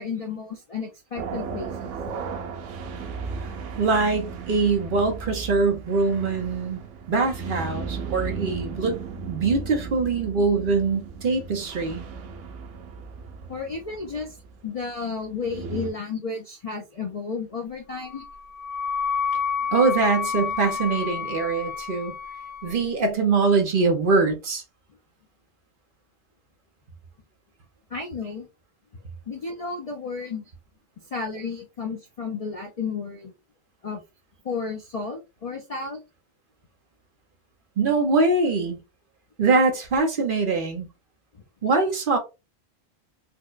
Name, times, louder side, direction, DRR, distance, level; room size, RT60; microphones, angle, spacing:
voice 1, 0.0-1.9 13.5-14.4 14.6-18.2 27.9-28.5 29.3-30.5 31.1-33.3 33.8-34.0 34.4-36.0, left 4 dB, 50° left, 0.4 m, -32 dB
sound 1, 1.2-15.9, right 5 dB, 90° right, 0.9 m, -35 dB
voice 2, 3.8-6.8 7.1-9.0 9.3-12.0 15.1-15.2 19.7-22.1 22.6-24.6 37.8-38.8 39.4-40.9 41.6-42.2, right 3 dB, 50° right, 0.8 m, -23 dB
Wind instrument woodwind instrument, 18.0-22.8, left 6 dB, 75° left, 1.7 m, -29 dB
4.4 x 2.1 x 2.4 m
omnidirectional pair, 1.2 m